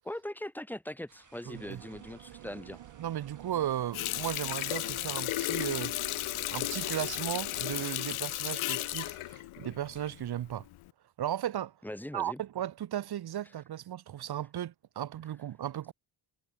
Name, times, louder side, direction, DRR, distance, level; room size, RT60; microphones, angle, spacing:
voice 1, 0.0-2.8 11.8-12.4, left 1 dB, 5° left, 1.8 m, -40 dB
sound 1, 1.1-9.4, right 4 dB, 40° right, 6.0 m, -61 dB
voice 2, 1.5-1.8 3.0-6.0 6.5-10.6 11.2-11.7 12.1-15.9, right 11 dB, 55° right, 0.8 m, -36 dB
sound 2, 1.5-7.9, right 12 dB, 90° right, 5.4 m, -50 dB
Water tap faucet, 3.9-10.3 10.7-10.9, left 17 dB, 90° left, 0.9 m, -34 dB
cardioid pair, 65°, 47 cm